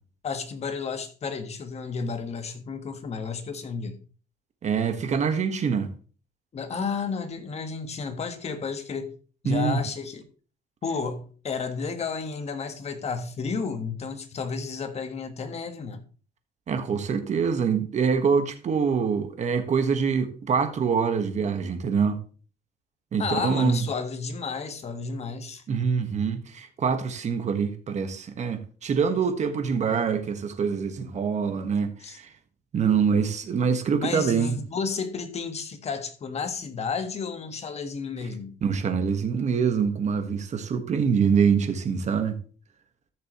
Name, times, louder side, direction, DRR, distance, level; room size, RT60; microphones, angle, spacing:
voice 1, 0.2-4.0 6.5-9.1 9.4-10.2 10.8-16.0 23.2-25.6 32.0-32.2 34.0-38.6, left 5 dB, 40° left, 1.6 m, -32 dB
voice 2, 4.6-5.9 9.4-9.8 16.7-22.2 23.1-23.8 25.7-32.3 32.7-34.6 38.6-42.4, right 6 dB, 45° right, 1.5 m, -25 dB
13.5 x 6.6 x 3.1 m
cardioid pair, 110°, 17 cm